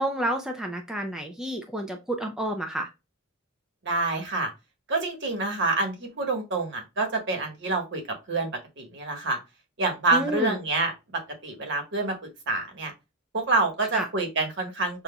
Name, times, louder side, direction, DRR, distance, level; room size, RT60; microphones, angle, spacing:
voice 1, 0.0-2.9 10.1-10.6 13.9-14.1, right 1 dB, 5° right, 2 dB, 0.5 m, -30 dB
voice 2, 3.8-4.5 4.9-8.0 8.3-8.5 8.8-9.4 9.8-10.9 11.4-12.9 13.3-15.0, right 3 dB, 60° right, 3 dB, 1.4 m, -27 dB
5.8 x 2.5 x 2.2 m, 0.25 s
head